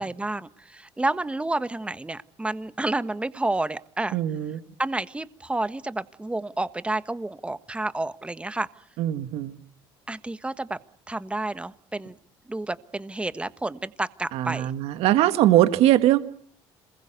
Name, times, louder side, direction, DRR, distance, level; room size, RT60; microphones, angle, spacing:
voice 1, 0.0-4.2 4.8-8.7 10.1-10.8 11.1-12.2 12.5-14.7, right 2 dB, 10° right, 13 dB, 1.4 m, -30 dB
voice 2, 4.1-4.6 9.0-9.5 14.3-16.2, right 13 dB, 80° right, 10 dB, 1.6 m, -21 dB
27.0 x 21.0 x 8.0 m, 0.62 s
cardioid pair, 100°, 10 cm